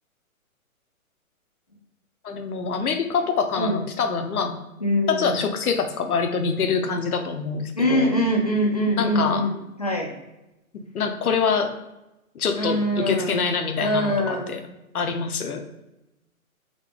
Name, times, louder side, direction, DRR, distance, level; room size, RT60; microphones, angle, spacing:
voice 1, 2.2-4.5 5.1-8.1 9.0-9.4 10.9-11.7 12.3-14.6 14.9-15.6, left 5 dB, 80° left, 6 dB, 0.8 m, -25 dB
voice 2, 4.8-5.4 7.8-10.1 12.6-13.4 13.8-14.5, equal, 30° left, -1 dB, 0.4 m, -23 dB
3.8 x 2.2 x 3.7 m, 0.94 s
hypercardioid pair, 165°, 43 cm